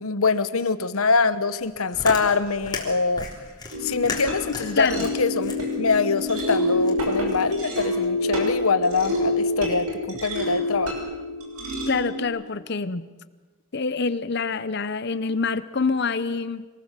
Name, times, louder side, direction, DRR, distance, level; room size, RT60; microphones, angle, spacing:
voice 1, 0.0-3.3 3.8-9.9 10.2-10.9, left 4 dB, 75° left, 13 dB, 1.1 m, -24 dB
Chewing mastication, 1.6-8.1, left 3 dB, 20° left, 3.6 m, -36 dB
sound 1, 3.7-12.2, left 1 dB, 90° right, 6.2 m, -27 dB
voice 2, 4.8-5.1 11.9-13.1 13.7-16.7, left 4 dB, 50° left, 14 dB, 0.8 m, -26 dB
26.5 x 19.5 x 7.5 m, 1.3 s
head